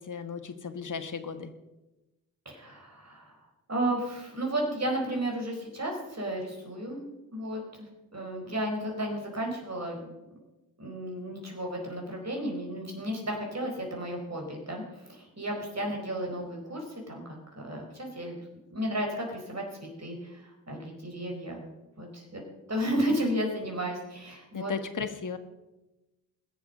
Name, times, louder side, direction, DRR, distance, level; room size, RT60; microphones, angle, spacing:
voice 1, 0.0-1.5 24.5-25.4, left 5 dB, 40° left, 9 dB, 1.4 m, -35 dB
voice 2, 2.4-3.3 3.7-7.0 7.3-10.0 10.8-17.2 17.5-18.4 18.7-21.6 22.0-22.4 22.7-24.7, right 1 dB, 30° right, 1 dB, 4.7 m, -33 dB
21.0 x 7.0 x 5.4 m, 1.0 s
hypercardioid pair, 40°, 49 cm